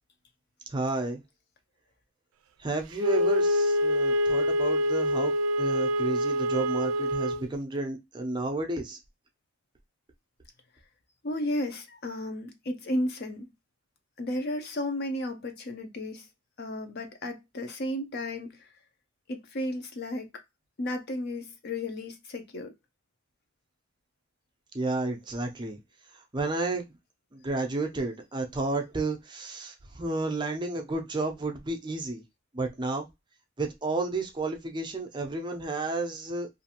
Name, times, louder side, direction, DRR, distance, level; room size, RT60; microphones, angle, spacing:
voice 1, 0.7-1.2 2.6-5.3 5.6-9.0 24.7-25.8 26.3-26.9 27.3-32.2 32.5-33.1 33.6-36.5, right 2 dB, 20° right, 0.5 m, -31 dB
Wind instrument woodwind instrument, 3.0-7.5, equal, 90° right, 0.3 m, -25 dB
voice 2, 11.2-13.5 14.2-16.3 16.6-18.7 19.3-20.3 20.8-22.7, left 1 dB, 50° left, 0.5 m, -33 dB
2.5 x 2.4 x 2.8 m
head